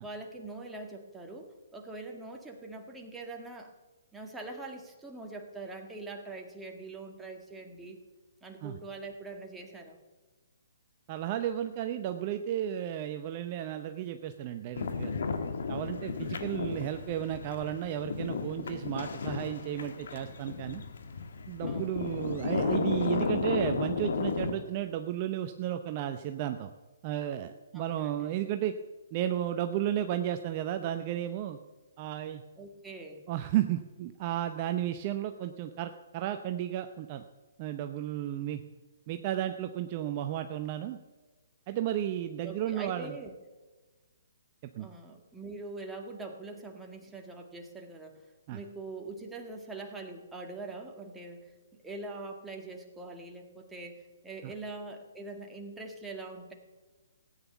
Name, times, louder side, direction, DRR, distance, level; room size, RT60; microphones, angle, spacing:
voice 1, 0.0-3.7 4.1-8.0 8.4-10.0 21.6-22.0 27.7-28.3 32.6-33.3 42.4-43.3 44.8-48.2 48.5-56.5, right 2 dB, 10° right, 2 dB, 1.8 m, -43 dB
voice 2, 11.1-15.2 15.7-20.8 21.5-26.7 27.0-28.7 29.1-31.6 32.0-32.4 33.3-37.2 37.6-38.6 39.1-41.0 41.7-43.2 44.8-44.9 48.5-48.6 54.4-54.5, right 11 dB, 35° right, 8 dB, 0.7 m, -33 dB
sound 1, 14.8-24.5, left 4 dB, 65° left, 1.6 m, -33 dB
16.0 x 9.1 x 7.1 m, 1.2 s
figure-of-eight pair, 135°, 0 cm